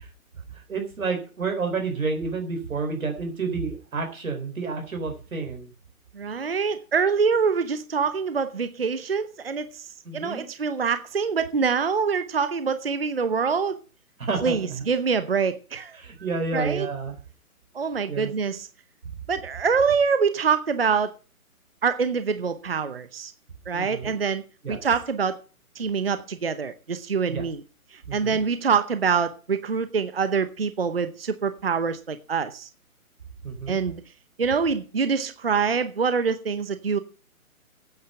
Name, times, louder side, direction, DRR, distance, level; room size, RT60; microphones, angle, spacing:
voice 1, 0.5-5.7 10.0-10.5 14.2-14.8 15.9-17.2 18.1-18.3 23.7-24.2 24.6-24.8 27.3-27.4 28.1-28.4 33.4-33.8, right 4 dB, 65° right, 4 dB, 4.2 m, -30 dB
voice 2, 6.1-9.9 10.1-13.8 14.4-16.0 16.5-16.9 17.7-18.7 19.3-21.1 21.8-23.3 23.7-24.4 24.7-25.4 25.8-27.6 27.9-32.7 33.7-34.0 34.4-37.0, right 5 dB, 40° right, 12 dB, 0.8 m, -25 dB
9.3 x 9.3 x 7.8 m, 0.36 s
hypercardioid pair, 180°, 44 cm